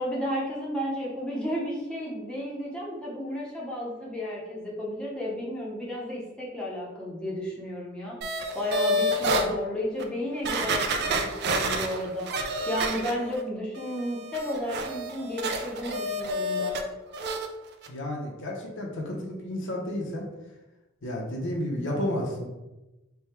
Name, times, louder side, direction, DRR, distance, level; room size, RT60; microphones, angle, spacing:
voice 1, 0.0-12.3 12.7-16.8, left 1 dB, 5° left, -6 dB, 0.7 m, -33 dB
sound 1, 8.2-9.5 10.0-10.1 10.4-13.4 13.7-16.8 17.1-17.5 17.8-17.9, right 1 dB, 50° right, 0.4 m, -29 dB
voice 2, 17.9-20.3 21.0-22.5, left 1 dB, 65° left, -1 dB, 0.7 m, -31 dB
3.4 x 2.2 x 4.3 m, 1.1 s
head